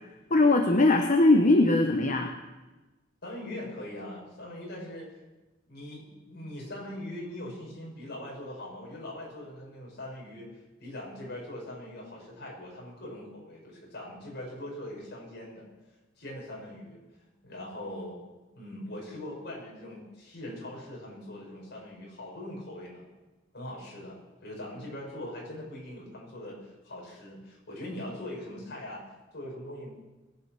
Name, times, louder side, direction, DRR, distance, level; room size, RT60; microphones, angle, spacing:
voice 1, 0.3-2.3, left 2 dB, 40° left, 4 dB, 1.1 m, -21 dB
voice 2, 3.2-5.1 5.7-10.5 10.8-15.7 16.2-17.0 17.4-18.3 18.5-23.0 23.5-29.0 29.3-29.9, left 1 dB, 60° left, -3 dB, 6.6 m, -41 dB
21.0 x 9.6 x 6.1 m, 1.1 s
head